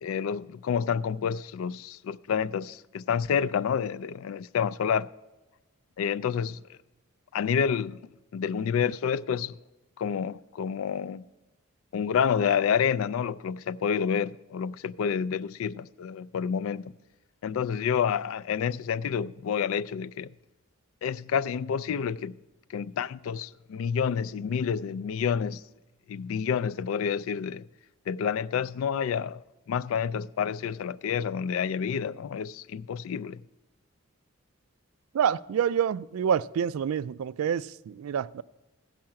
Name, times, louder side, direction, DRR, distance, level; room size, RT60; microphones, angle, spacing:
voice 1, 0.0-5.1 6.0-6.6 7.3-8.0 8.3-9.6 10.0-11.2 11.9-16.9 17.4-20.3 21.0-22.4 22.7-25.6 26.1-27.7 28.1-29.4 29.7-33.4, left 7 dB, 75° left, 0.3 m, -29 dB
voice 2, 35.1-38.4, right 8 dB, 80° right, 0.3 m, -27 dB
14.5 x 5.8 x 7.5 m
head